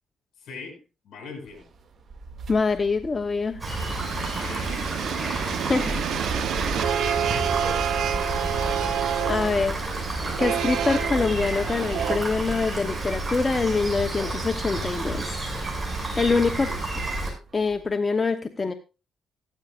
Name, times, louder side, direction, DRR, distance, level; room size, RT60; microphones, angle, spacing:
voice 1, 0.4-1.7 4.2-5.4 6.8-7.7 8.0-9.2, left 4 dB, 65° left, 2 dB, 7.6 m, -42 dB
sound 1, 1.4-17.9, right 3 dB, 55° right, 2.3 m, -41 dB
voice 2, 2.5-3.6 5.3-5.9 9.3-9.8 10.4-15.5 16.2-16.7 17.5-18.7, left 4 dB, 25° left, 7 dB, 1.0 m, -25 dB
Rain, 3.6-17.3, right 2 dB, 20° right, 6.6 m, -30 dB
sound 2, 3.9-12.2, right 9 dB, 75° right, 0.9 m, -29 dB
16.0 x 13.0 x 2.5 m, 0.30 s
cardioid pair, 90°, 0 cm